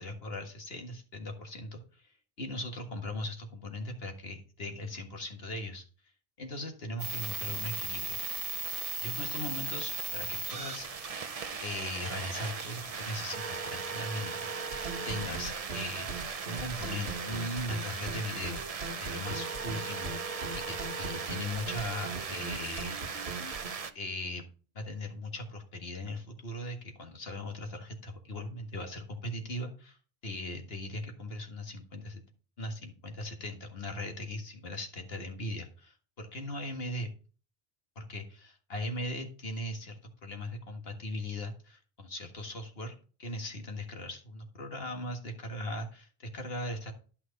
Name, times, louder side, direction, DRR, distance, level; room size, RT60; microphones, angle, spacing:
voice 1, 0.0-5.8 6.4-8.2 9.0-11.1 11.6-14.5 15.1-16.1 16.4-18.6 19.0-23.0 24.0-24.4 24.8-32.2 32.6-37.1 38.0-46.9, left 1 dB, 70° left, 4 dB, 1.9 m, -39 dB
sound 1, 7.0-23.9, right 5 dB, 40° right, 0.7 m, -37 dB
sound 2, 14.7-23.7, right 3 dB, 85° right, 1.5 m, -40 dB
11.0 x 6.0 x 4.0 m, 0.38 s
omnidirectional pair, 1.0 m